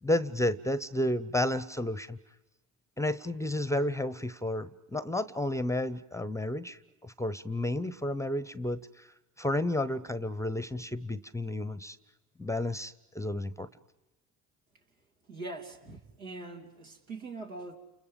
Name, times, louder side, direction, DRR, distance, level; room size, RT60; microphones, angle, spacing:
voice 1, 0.0-2.2 3.0-9.1 9.4-12.0 12.4-13.7, left 1 dB, 5° left, 16 dB, 0.8 m, -31 dB
voice 2, 15.3-17.8, right 3 dB, 80° right, 0 dB, 3.0 m, -42 dB
30.0 x 29.5 x 5.3 m, 1.0 s
hypercardioid pair, 60°, 42 cm